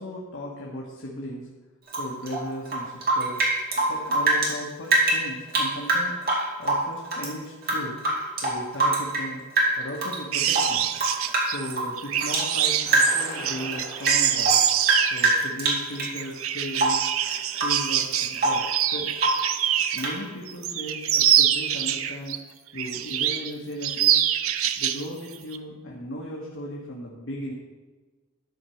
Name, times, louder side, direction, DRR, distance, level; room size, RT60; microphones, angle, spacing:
voice 1, 0.0-1.5 1.9-3.4 3.9-6.1 6.6-8.0 8.4-9.4 9.8-10.9 11.4-14.6 15.1-17.0 17.6-19.1 19.9-22.4 22.7-24.2 24.8-27.5, equal, 65° left, -4 dB, 1.5 m, -36 dB
Rain / Drip, 1.9-4.5 4.8-7.3 7.6-9.3 9.6-10.2 10.5-12.5 12.9-13.3 13.7-16.2 16.7-17.1 17.5-17.9 18.1-18.7 19.2-19.5 20.0-20.2, right 2 dB, 50° right, 2.3 m, -24 dB
sound 1, 10.3-20.1 20.5-22.4 22.8-23.5 23.8-25.0 25.3-25.6, right 10 dB, 85° right, 0.6 m, -25 dB
sound 2, 12.9-15.7, left 2 dB, 85° left, 3.0 m, -42 dB
12.5 x 4.6 x 6.5 m, 1.3 s
head